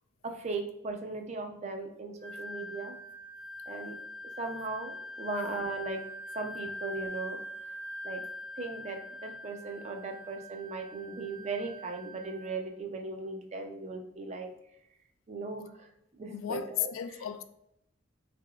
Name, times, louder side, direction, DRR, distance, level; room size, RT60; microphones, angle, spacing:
voice 1, 0.2-3.0 3.7-4.0 4.4-6.0 6.3-7.4 8.0-8.2 8.6-14.5 15.3-15.9 16.2-16.9, right 3 dB, 35° right, 0.4 m, -38 dB
Wind instrument woodwind instrument, 2.2-12.6, left 1 dB, 25° left, 0.6 m, -43 dB
voice 2, 16.3-17.4, left 10 dB, 85° left, 0.3 m, -34 dB
3.7 x 3.4 x 2.3 m
head